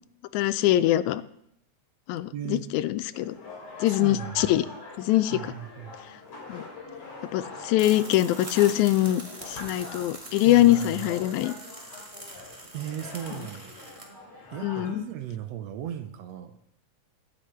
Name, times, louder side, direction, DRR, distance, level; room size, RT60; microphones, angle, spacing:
voice 1, 0.3-1.2 2.1-3.4 3.8-4.7 5.0-5.4 6.5-6.6 7.3-11.5 14.6-15.0, left 14 dB, 85° left, 14 dB, 1.9 m, -23 dB
voice 2, 2.3-2.7 3.9-4.5 5.3-5.9 10.4-11.1 12.7-13.7 14.5-16.6, right 11 dB, 75° right, 9 dB, 1.7 m, -37 dB
sound 1, 3.1-14.9, left 3 dB, 65° left, 4.1 m, -43 dB
sound 2, 7.8-14.0, right 1 dB, 20° right, 1.0 m, -43 dB
11.0 x 9.9 x 4.4 m, 0.74 s
omnidirectional pair, 3.3 m